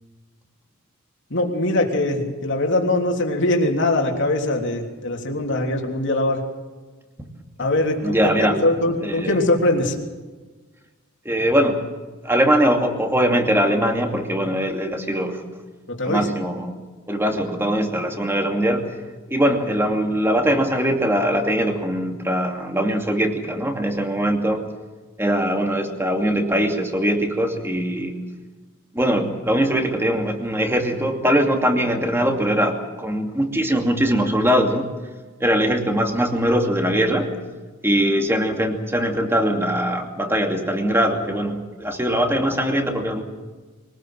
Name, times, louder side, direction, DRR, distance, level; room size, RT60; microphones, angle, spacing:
voice 1, 1.3-6.4 7.6-9.9 15.9-16.3, left 2 dB, 55° left, 1 dB, 3.3 m, -22 dB
voice 2, 8.0-8.6 9.0-9.4 11.2-11.8 12.2-15.4 16.0-16.8 17.1-18.9 19.3-24.6 25.2-28.2 28.9-34.9 35.4-37.3 37.8-43.2, equal, 10° right, 3 dB, 2.6 m, -21 dB
24.0 x 19.0 x 7.7 m, 1.3 s
head